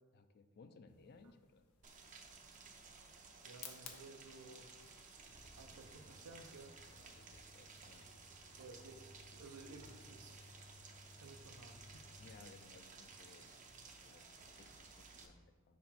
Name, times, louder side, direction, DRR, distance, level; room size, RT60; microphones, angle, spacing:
voice 1, 0.1-1.7 7.0-8.1 12.2-13.6 13.8-15.8, left 4 dB, 45° left, 10 dB, 0.4 m, -62 dB
sound 1, 0.9-12.5, left 7 dB, 80° left, 0.8 m, -62 dB
Rain, 1.8-15.3, right 4 dB, 35° right, 0.6 m, -57 dB
voice 2, 3.4-4.7 5.6-6.7 8.6-10.5 11.2-12.0, right 3 dB, 85° right, 5 dB, 0.7 m, -56 dB
Engine, 5.2-12.3, left 1 dB, 55° right, 1.1 m, -61 dB
5.6 x 4.3 x 4.2 m, 1.5 s
head